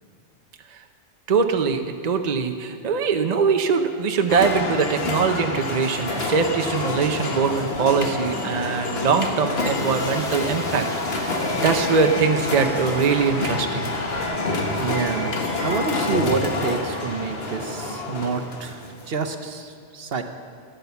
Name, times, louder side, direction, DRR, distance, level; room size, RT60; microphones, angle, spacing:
voice 1, 1.3-10.9 11.1-13.9, right 5 dB, 40° right, 6 dB, 0.8 m, -22 dB
sound 1, 4.3-19.1, left 2 dB, 60° left, 1.6 m, -27 dB
sound 2, 9.7-15.5 15.7-15.8, equal, 5° left, 2.0 m, -39 dB
sound 3, 11.4-11.7 12.0-12.3 14.4-14.7 15.0-15.3, left 2 dB, 80° left, 2.7 m, -40 dB
voice 2, 14.8-20.2, right 5 dB, 60° right, 7 dB, 1.1 m, -28 dB
15.0 x 10.5 x 6.9 m, 2.4 s
omnidirectional pair, 1.2 m